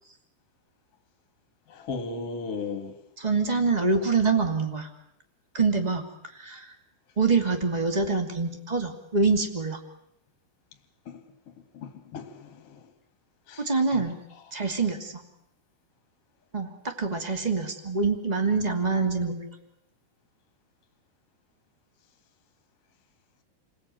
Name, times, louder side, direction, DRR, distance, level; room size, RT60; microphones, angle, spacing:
voice 1, 1.7-3.0 11.1-12.9 13.5-14.0 14.3-14.5 14.8-14.9, left 4 dB, 45° left, 2.0 m, -37 dB
voice 2, 3.2-4.9 5.5-6.0 6.3-6.7 7.1-9.8 13.6-14.2 14.5-15.2 16.5-19.5, right 4 dB, 35° right, 0.6 m, -25 dB
30.0 x 20.0 x 9.3 m
omnidirectional pair, 5.9 m